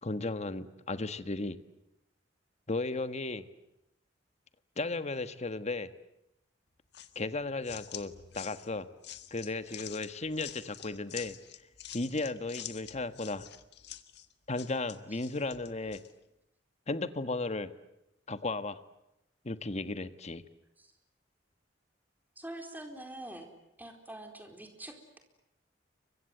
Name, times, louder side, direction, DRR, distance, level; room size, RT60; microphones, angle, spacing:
voice 1, 0.0-1.6 2.7-3.5 4.8-5.9 7.1-8.9 9.3-11.4 11.9-13.5 14.5-16.0 16.9-17.7 18.3-18.8 19.4-20.4, left 2 dB, 40° left, 12 dB, 1.4 m, -35 dB
sound 1, 6.9-16.1, left 11 dB, 65° left, 1.7 m, -47 dB
voice 2, 22.4-23.5 23.8-25.2, right 1 dB, 10° right, 4 dB, 4.3 m, -45 dB
29.5 x 24.5 x 7.9 m, 0.87 s
head